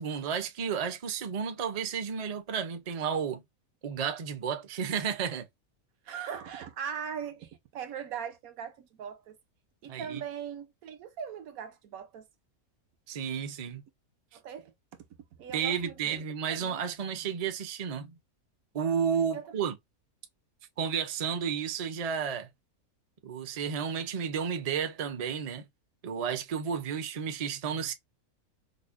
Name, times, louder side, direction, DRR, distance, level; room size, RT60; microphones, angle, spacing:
voice 1, 0.0-3.4 3.8-5.5 9.9-10.2 13.1-13.8 15.5-18.1 18.7-19.8 20.8-22.5 23.2-25.6 26.0-27.9, right 7 dB, 45° right, 0.5 m, -32 dB
voice 2, 6.0-9.4 9.8-12.3 14.3-15.0 15.4-16.2 16.5-16.8 19.3-19.5, right 8 dB, 75° right, 1.1 m, -40 dB
5.2 x 2.1 x 2.5 m
omnidirectional pair, 1.5 m